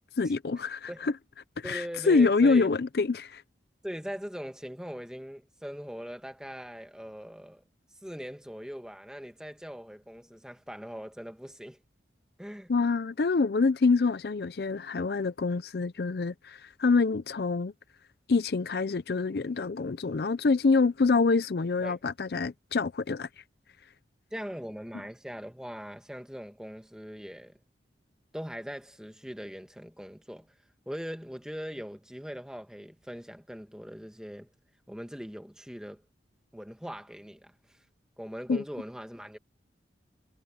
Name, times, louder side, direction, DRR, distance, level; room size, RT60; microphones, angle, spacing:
voice 1, 0.2-1.1 1.6-3.4 12.7-17.7 18.3-23.3 38.5-38.6, left 4 dB, 60° left, 0.5 m, -26 dB
voice 2, 1.6-2.7 3.8-7.6 8.0-11.8 12.4-12.7 21.8-22.0 24.3-27.6 28.3-30.5 30.8-34.5 34.9-36.0 36.5-37.8 38.2-39.4, equal, 5° right, 1.5 m, -41 dB
head